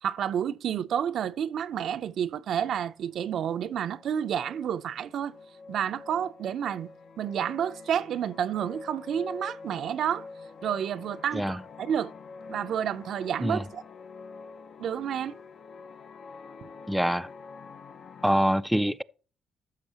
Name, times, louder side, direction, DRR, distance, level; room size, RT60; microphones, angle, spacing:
voice 1, 0.0-5.3 5.7-6.9 7.2-10.3 10.6-12.1 12.5-13.8 14.8-15.3 16.6-16.7, right 9 dB, 70° right, 0.5 m, -30 dB
sound 1, 3.0-18.4, left 4 dB, 55° left, 0.6 m, -46 dB
voice 2, 16.9-17.3 18.2-19.0, equal, ahead, 0.3 m, -25 dB
13.0 x 6.5 x 2.9 m
cardioid pair, 90°, 0 cm